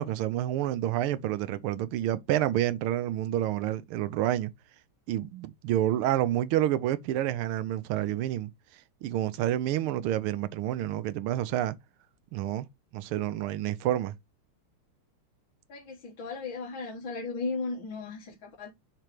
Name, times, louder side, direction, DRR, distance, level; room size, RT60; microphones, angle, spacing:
voice 1, 0.0-4.5 5.1-8.5 9.0-11.8 12.3-12.7 12.9-14.1, right 13 dB, 80° right, 1.6 m, -28 dB
voice 2, 15.7-18.7, left 4 dB, 60° left, 2.1 m, -36 dB
7.5 x 3.2 x 5.1 m
omnidirectional pair, 2.4 m